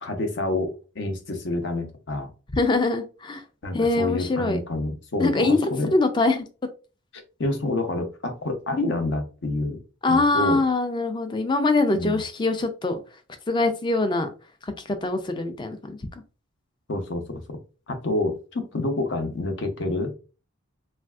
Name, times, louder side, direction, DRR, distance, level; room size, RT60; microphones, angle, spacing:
voice 1, 0.0-2.3 3.6-5.9 7.4-9.8 10.1-10.6 11.9-12.2 16.9-17.6 17.9-20.1, left 2 dB, 60° left, 6 dB, 0.6 m, -28 dB
voice 2, 2.5-3.4 3.7-4.6 5.2-6.5 10.0-13.0 13.5-14.3 14.6-16.0, left 3 dB, 20° left, 8 dB, 0.3 m, -23 dB
3.2 x 2.5 x 2.3 m, 0.34 s
head